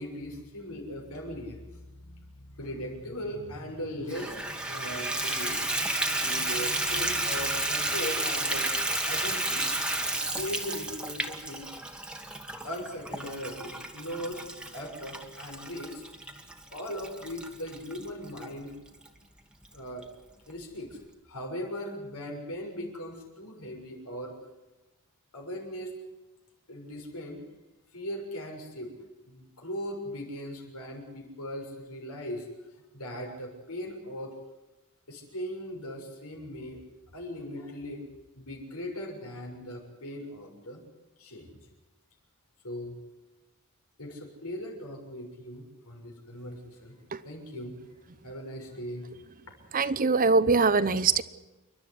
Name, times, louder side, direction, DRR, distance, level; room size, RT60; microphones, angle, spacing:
voice 1, 0.0-8.7 9.1-9.6 10.3-11.7 12.6-14.5 14.7-16.0 16.7-18.7 19.7-20.0 20.5-21.0 21.3-24.3 25.3-25.9 26.7-27.4 27.9-28.9 29.3-32.5 32.9-34.4 35.1-36.8 37.1-38.0 38.4-40.8 41.2-41.6 42.6-43.0 44.0-46.9 47.2-47.8 48.2-49.1, equal, 85° left, 1 dB, 6.8 m, -39 dB
Water tap faucet / Bathtub (filling or washing), 4.1-18.5 19.1-19.2 19.7-19.8 20.0-20.1, right 2 dB, 5° right, 1.7 m, -32 dB
voice 2, 49.7-51.2, right 4 dB, 40° right, 14 dB, 0.9 m, -23 dB
28.5 x 12.0 x 9.8 m, 1.1 s
head